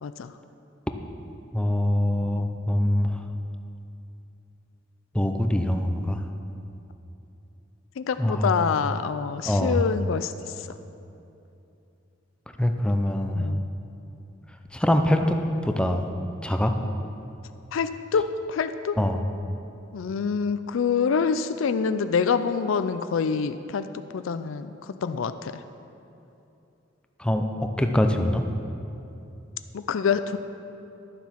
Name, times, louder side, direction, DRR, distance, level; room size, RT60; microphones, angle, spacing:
voice 1, 0.0-0.3 8.0-10.5 13.3-13.6 17.7-19.0 19.9-25.5 29.7-30.4, left 6 dB, 75° left, 11 dB, 0.4 m, -26 dB
voice 2, 1.5-3.2 5.1-6.2 8.2-8.6 9.5-9.8 12.6-13.5 14.7-15.4 15.6-16.1 16.4-16.7 19.0-19.2 27.2-27.4 27.8-28.4, left 1 dB, 5° left, 5 dB, 0.6 m, -23 dB
11.5 x 7.2 x 5.8 m, 2.8 s
head